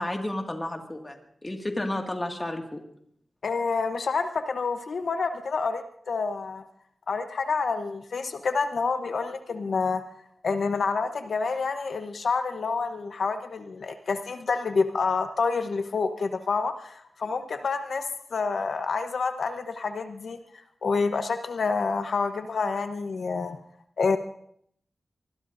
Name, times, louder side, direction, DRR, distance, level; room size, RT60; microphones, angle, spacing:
voice 1, 0.0-2.8, left 1 dB, 20° left, 3 dB, 1.9 m, -32 dB
voice 2, 3.4-6.6 7.1-10.0 10.4-18.0 18.3-20.4 20.8-23.6 24.0-24.2, left 4 dB, 70° left, 7 dB, 0.8 m, -28 dB
25.5 x 20.5 x 2.6 m, 0.68 s
wide cardioid pair, 140°, 0 cm